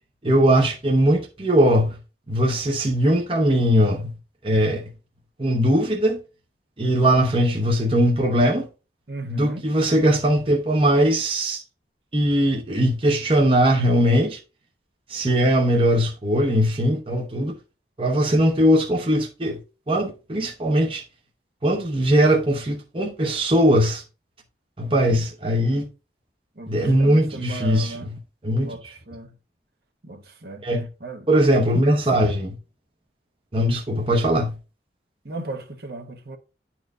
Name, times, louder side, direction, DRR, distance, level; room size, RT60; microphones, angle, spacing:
voice 1, 0.2-2.0 2.3-4.2 4.4-4.9 5.4-6.2 6.8-8.7 9.3-11.6 12.1-14.4 15.1-17.5 18.0-19.6 19.9-21.0 21.6-24.0 24.8-25.9 26.7-28.2 28.4-28.9 30.6-30.9 31.3-32.6 33.5-34.6, equal, 30° right, 0.9 m, -20 dB
voice 2, 9.1-9.6 26.6-28.1 28.5-29.3 30.0-30.6 31.0-31.3 35.2-36.4, right 2 dB, 60° right, 1.2 m, -36 dB
11.0 x 4.3 x 2.5 m
head